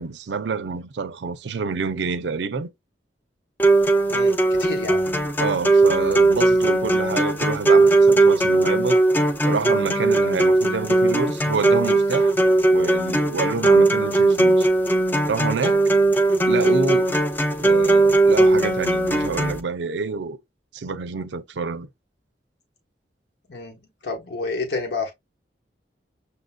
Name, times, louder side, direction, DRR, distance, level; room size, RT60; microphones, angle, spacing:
voice 1, 0.0-2.7 5.4-9.0 9.4-12.4 12.7-14.7 15.3-15.9 16.5-17.1 17.6-20.4 20.7-21.9, right 4 dB, 90° right, 0.6 m, -27 dB
sound 1, 3.6-19.6, right 2 dB, 10° left, 0.4 m, -18 dB
voice 2, 4.1-5.0 23.5-25.1, left 3 dB, 70° left, 1.0 m, -30 dB
6.7 x 2.6 x 2.3 m
head